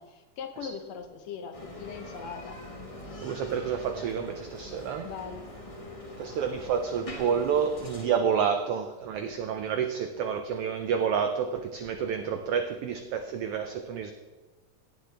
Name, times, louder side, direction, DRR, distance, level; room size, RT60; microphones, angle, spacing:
voice 1, 0.0-2.6 5.0-5.5, left 6 dB, 70° left, 6 dB, 2.0 m, -40 dB
Bicycle, 1.5-8.1, left 1 dB, 25° left, 0.7 m, -43 dB
voice 2, 3.2-5.1 6.2-14.1, right 7 dB, 85° right, 7 dB, 1.3 m, -29 dB
17.0 x 7.9 x 3.4 m, 1.3 s
omnidirectional pair, 3.3 m